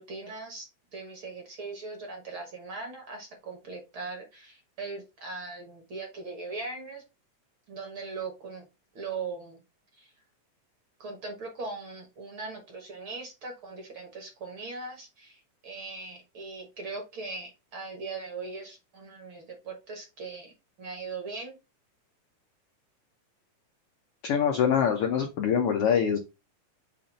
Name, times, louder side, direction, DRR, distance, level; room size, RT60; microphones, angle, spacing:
voice 1, 0.0-7.0 7.7-8.7 8.9-9.6 10.0-10.1 11.0-21.6, right 3 dB, 50° right, 2 dB, 1.6 m, -40 dB
voice 2, 24.2-26.2, left 7 dB, 85° left, 4 dB, 1.2 m, -24 dB
7.2 x 2.6 x 5.3 m, 0.26 s
omnidirectional pair, 3.8 m